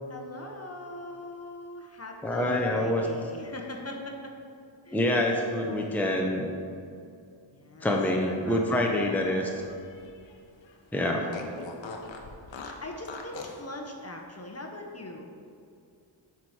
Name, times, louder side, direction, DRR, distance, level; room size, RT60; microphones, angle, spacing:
voice 1, 0.1-4.3 4.8-5.2 7.5-7.9 8.2-8.6 8.9-9.5 11.1-11.4 12.6-15.3, left 1 dB, 30° left, 2 dB, 1.0 m, -41 dB
voice 2, 2.2-3.1 4.9-6.5 7.8-9.6 10.9-11.2, left 1 dB, 5° left, 0 dB, 0.9 m, -26 dB
Fart, 8.3-10.4 10.7-10.8 11.3-13.6, left 4 dB, 70° left, 1.0 m, -43 dB
7.4 x 4.7 x 5.7 m, 2.4 s
cardioid pair, 65°, 47 cm